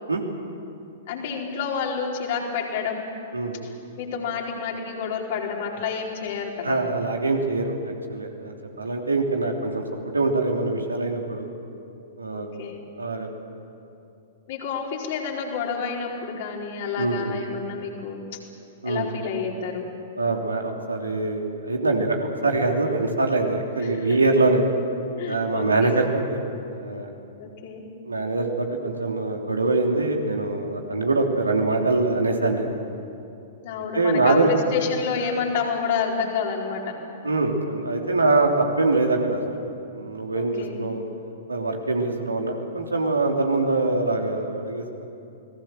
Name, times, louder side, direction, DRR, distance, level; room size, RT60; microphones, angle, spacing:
voice 1, 1.1-3.1 4.0-6.7 12.3-12.8 14.5-18.2 18.8-19.9 23.8-24.2 25.2-26.0 27.4-27.8 33.6-37.0 40.3-40.8, left 6 dB, 50° left, -1 dB, 4.4 m, -29 dB
voice 2, 6.6-9.8 10.1-11.5 12.2-12.5 13.0-13.3 17.0-17.4 18.8-19.1 20.2-22.2 22.4-24.6 25.3-26.4 26.7-27.1 28.0-32.7 33.9-34.5 37.2-39.6 39.9-41.0 41.5-44.8, right 3 dB, 80° right, 2 dB, 3.1 m, -23 dB
30.0 x 20.0 x 7.8 m, 2.7 s
figure-of-eight pair, 105°, 0 cm